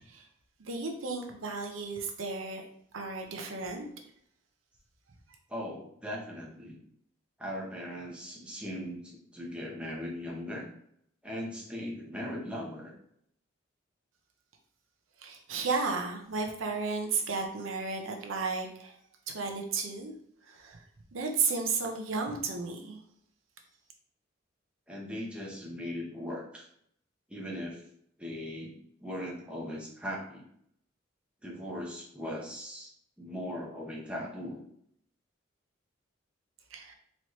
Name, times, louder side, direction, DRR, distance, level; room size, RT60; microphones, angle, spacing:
voice 1, 0.7-2.6 2.9-3.9 15.2-19.0 19.3-20.1 20.5-20.8 21.1-23.0 36.7-36.9, right 4 dB, 90° right, 3 dB, 0.7 m, -33 dB
voice 2, 5.5-6.8 7.4-10.7 11.2-12.9 24.9-26.7 27.3-27.8 28.2-30.5 31.4-32.9 33.2-34.6, equal, 5° right, -2 dB, 0.8 m, -39 dB
4.2 x 3.1 x 3.0 m, 0.69 s
head